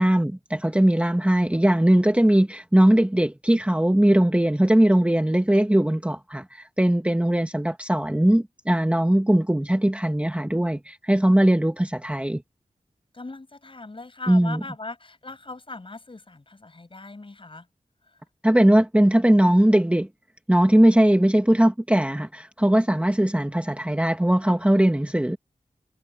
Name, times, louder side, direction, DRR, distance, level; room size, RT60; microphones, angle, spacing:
voice 1, 0.0-12.4 14.3-14.6 18.4-20.1 20.5-25.4, right 1 dB, 10° right, 1.6 m, -20 dB
voice 2, 13.1-17.6, left 3 dB, 40° left, 5.8 m, -39 dB
wide cardioid pair, 80°, 14 cm